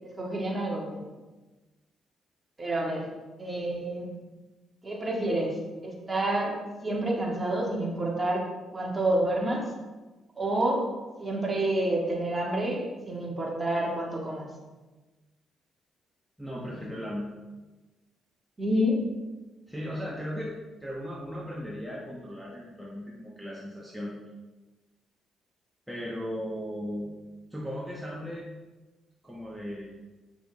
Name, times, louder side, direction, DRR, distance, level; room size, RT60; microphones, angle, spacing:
voice 1, 0.0-1.0 2.6-3.1 3.4-4.1 4.8-5.5 5.8-6.5 6.8-8.4 8.7-9.7 10.4-10.8 11.2-14.5 16.7-16.9 18.6-19.0, right 1 dB, 20° right, -2 dB, 2.1 m, -28 dB
voice 2, 16.4-17.3 19.7-20.5 20.8-24.1 25.9-27.1 27.5-28.5 29.2-29.9, equal, ahead, -5 dB, 1.3 m, -36 dB
8.1 x 6.1 x 3.6 m, 1.2 s
cardioid pair, 90°, 0 cm